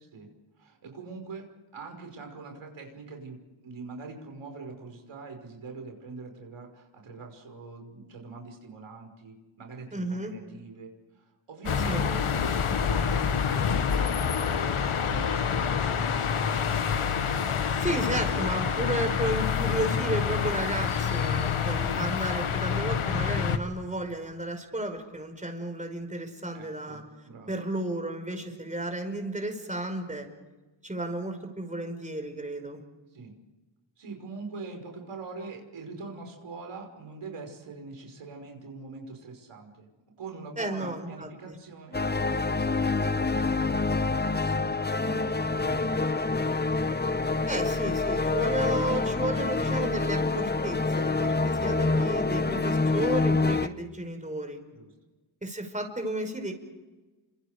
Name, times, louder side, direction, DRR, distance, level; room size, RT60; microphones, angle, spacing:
voice 1, 0.6-16.5 26.5-27.6 33.1-33.4 34.0-39.9 40.2-46.8 51.5-52.2 54.7-54.9, right 4 dB, 90° right, 3 dB, 5.7 m, -43 dB
voice 2, 9.9-10.3 11.9-12.0 17.8-27.0 27.5-30.3 30.8-32.8 40.6-41.6 47.5-54.6 55.4-56.5, right 1 dB, 15° right, 5 dB, 5.1 m, -33 dB
sound 1, 11.7-23.6, left 7 dB, 85° left, 1.7 m, -27 dB
sound 2, 41.9-53.7, left 3 dB, 20° left, 1.0 m, -27 dB
30.0 x 26.0 x 5.1 m, 1.2 s
wide cardioid pair, 90°, 49 cm